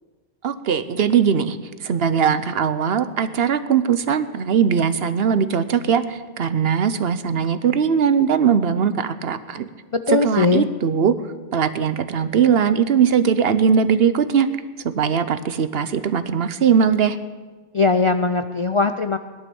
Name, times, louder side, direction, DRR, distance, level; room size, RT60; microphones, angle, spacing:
voice 1, 0.4-9.7 10.1-11.1 11.5-14.5 14.8-17.2, right 7 dB, 60° right, 13 dB, 1.0 m, -20 dB
voice 2, 9.9-10.7 17.7-19.2, left 4 dB, 45° left, 9 dB, 0.4 m, -19 dB
18.0 x 11.5 x 7.0 m, 1.4 s
omnidirectional pair, 1.2 m